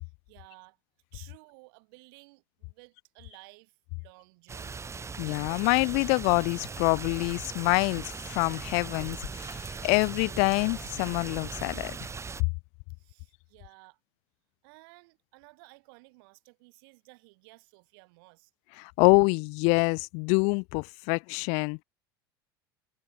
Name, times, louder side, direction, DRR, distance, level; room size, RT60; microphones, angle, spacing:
voice 1, 0.0-0.8 1.1-4.9 13.0-14.0 14.6-18.5, right 28 dB, 70° right, 5.5 m, -55 dB
sound 1, 4.5-12.4, right 5 dB, 20° right, 4.4 m, -39 dB
voice 2, 5.2-12.0 18.8-21.8, left 35 dB, 60° left, 0.4 m, -26 dB
hypercardioid pair, 75°, 12 cm